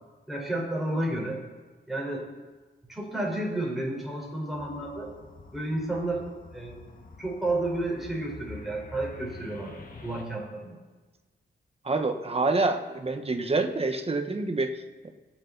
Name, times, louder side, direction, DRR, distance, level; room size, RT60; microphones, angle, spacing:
voice 1, 0.3-1.4 1.9-2.3 2.9-5.1 5.5-6.8 7.2-9.7 10.0-10.8, right 1 dB, ahead, -3 dB, 4.5 m, -31 dB
sound 1, 4.5-10.2, left 3 dB, 50° left, 1.8 m, -47 dB
voice 2, 11.8-15.1, right 3 dB, 30° right, 5 dB, 1.3 m, -27 dB
22.5 x 8.2 x 4.0 m, 1.3 s
wide cardioid pair, 95°, 19 cm